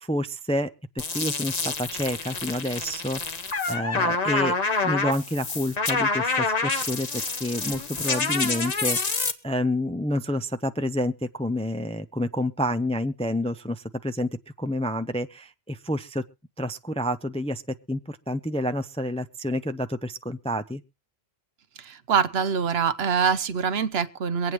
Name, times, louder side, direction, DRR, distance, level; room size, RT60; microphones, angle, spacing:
voice 1, 0.0-14.3 14.6-16.2 16.6-17.6 17.9-20.8, left 1 dB, 10° left, 0.4 m, -29 dB
sound 1, 1.0-9.3, left 3 dB, 40° left, 1.0 m, -27 dB
voice 2, 21.8-24.5, right 6 dB, 75° right, 1.0 m, -24 dB
24.0 x 8.8 x 3.1 m
omnidirectional pair, 1.1 m